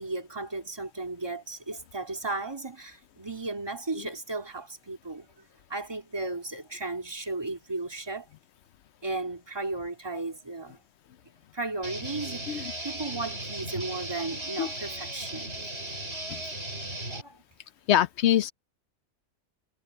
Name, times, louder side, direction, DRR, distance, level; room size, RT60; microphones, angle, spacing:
voice 1, 0.0-8.3 9.0-10.8 11.5-15.5 17.1-17.4, right 2 dB, 15° right, 2.6 m, -35 dB
sound 1, 11.8-17.2, right 1 dB, 50° right, 8.5 m, -36 dB
voice 2, 17.9-18.5, left 11 dB, 65° left, 0.7 m, -23 dB
omnidirectional pair, 1.5 m